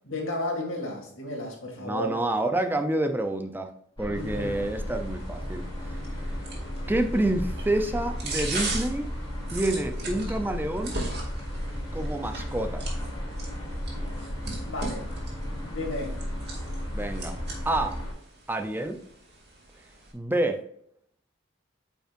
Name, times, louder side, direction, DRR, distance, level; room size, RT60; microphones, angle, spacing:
voice 1, 0.1-2.1 4.1-4.8 6.8-6.9 13.6-13.8 14.7-15.1 15.7-16.2, left 1 dB, 85° left, 1 dB, 2.1 m, -33 dB
voice 2, 1.8-3.7 4.0-5.6 6.9-9.1 9.5-11.0 11.9-12.8 16.9-17.4 17.7-18.0 18.5-19.0 20.1-20.6, right 1 dB, 10° right, 7 dB, 0.5 m, -28 dB
sound 1, 4.0-18.1, equal, 25° left, 2.8 m, -34 dB
sound 2, 4.2-20.1, right 2 dB, 55° right, 2.3 m, -40 dB
8.9 x 5.3 x 2.5 m, 0.68 s
head